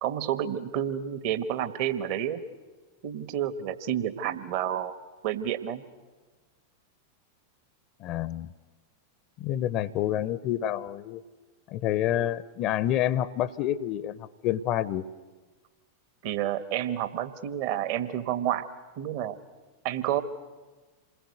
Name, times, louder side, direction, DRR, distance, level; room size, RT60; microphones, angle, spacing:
voice 1, 0.0-2.4 3.0-5.0 5.2-5.8 16.2-18.7 19.0-19.4 19.8-20.2, right 10 dB, 45° right, 13 dB, 1.4 m, -30 dB
voice 2, 8.0-8.5 9.4-11.2 11.7-15.1, left 12 dB, 40° left, 19 dB, 0.8 m, -28 dB
28.0 x 20.5 x 8.0 m, 1.3 s
figure-of-eight pair, 90°, 0 cm